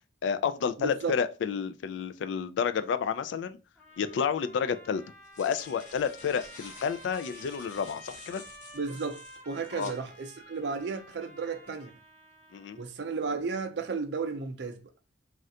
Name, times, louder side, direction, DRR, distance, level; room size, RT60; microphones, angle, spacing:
voice 1, 0.2-3.6 4.0-5.0 5.4-8.4 9.7-9.9 12.5-12.8, left 6 dB, 75° left, 0.3 m, -30 dB
voice 2, 0.8-1.1 8.7-11.9 12.8-14.8, right 4 dB, 65° right, 0.5 m, -34 dB
Trumpet, 3.8-12.9, equal, 5° left, 0.6 m, -51 dB
sound 1, 4.0-4.1 5.0-10.0, left 3 dB, 40° left, 0.8 m, -51 dB
3.2 x 2.4 x 2.7 m
head